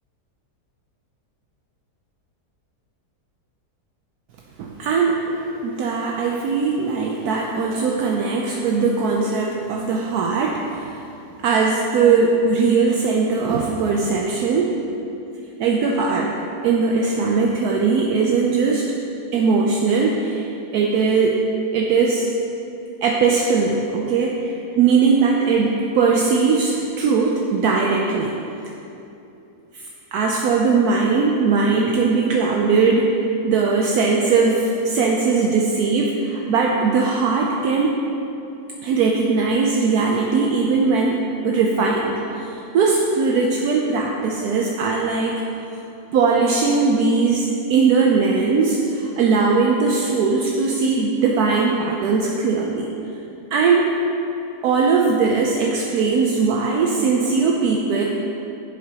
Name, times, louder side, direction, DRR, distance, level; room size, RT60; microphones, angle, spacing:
voice 1, 4.6-11.0 11.4-14.7 15.6-16.4 16.6-18.9 19.3-20.5 20.7-21.4 21.7-22.3 23.0-28.4 29.7-29.9 30.1-33.1 33.4-38.0 38.8-41.2 41.4-45.4 46.1-52.9 53.5-53.9 54.6-58.0, right 4 dB, 75° right, -1 dB, 1.1 m, -19 dB
10.5 x 7.5 x 2.9 m, 2.9 s
omnidirectional pair, 1.7 m